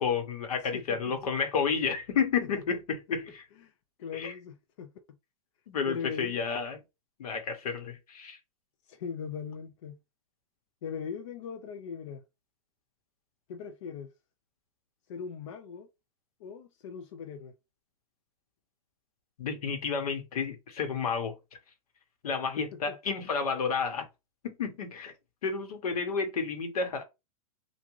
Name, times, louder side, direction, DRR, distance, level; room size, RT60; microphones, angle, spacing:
voice 1, 0.0-3.4 4.1-4.3 5.7-6.8 7.2-8.4 19.4-21.3 22.2-24.0 24.4-25.1 25.4-27.0, left 5 dB, 85° left, 1.2 m, -31 dB
voice 2, 0.7-1.1 2.4-2.6 3.6-3.7 4.0-5.2 5.9-6.4 8.9-10.0 10.8-12.2 13.5-14.1 15.1-15.9 16.4-17.5 22.6-23.0, left 6 dB, 55° left, 0.5 m, -40 dB
3.6 x 2.5 x 3.1 m
supercardioid pair, 165°, 19 cm